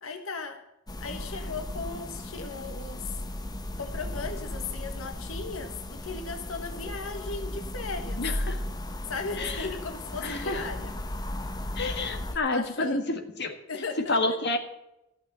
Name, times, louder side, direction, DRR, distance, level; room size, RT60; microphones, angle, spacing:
voice 1, 0.0-0.6 1.0-3.2 3.8-8.2 9.1-10.9 12.3-13.2 13.7-14.4, left 4 dB, 90° left, 5 dB, 1.5 m, -37 dB
sound 1, 0.9-12.4, left 1 dB, 20° left, 0.9 m, -36 dB
voice 2, 8.2-8.6 9.4-9.7 10.2-10.6 11.8-13.6 14.1-14.6, left 2 dB, 55° left, 4 dB, 1.8 m, -29 dB
14.0 x 6.6 x 9.0 m, 0.85 s
head